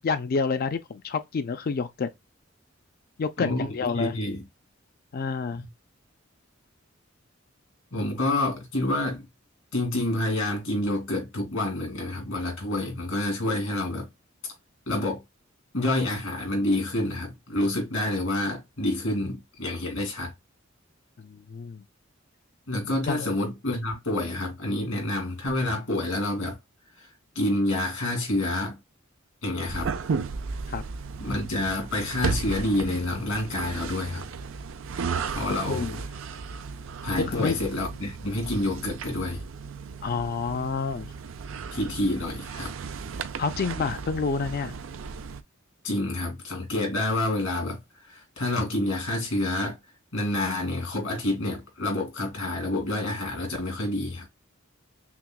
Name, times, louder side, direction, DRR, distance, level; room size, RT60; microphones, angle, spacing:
voice 1, 0.0-2.1 3.2-4.2 5.1-5.6 21.2-21.8 23.1-23.3 30.7-30.8 35.6-36.0 37.2-37.6 40.0-41.1 43.4-44.8, left 5 dB, 50° left, 0.4 m, -28 dB
voice 2, 3.9-4.4 5.6-5.7 7.9-9.3 9.7-14.1 14.9-15.2 15.7-20.3 22.7-26.6 27.0-28.8 29.4-29.9 31.2-34.3 35.3-35.8 37.0-39.4 41.7-42.7 45.8-49.8 50.1-54.3, left 1 dB, 80° left, 2.4 m, -28 dB
sound 1, 29.7-45.4, right 5 dB, 75° right, 0.4 m, -35 dB
5.8 x 2.2 x 2.2 m
head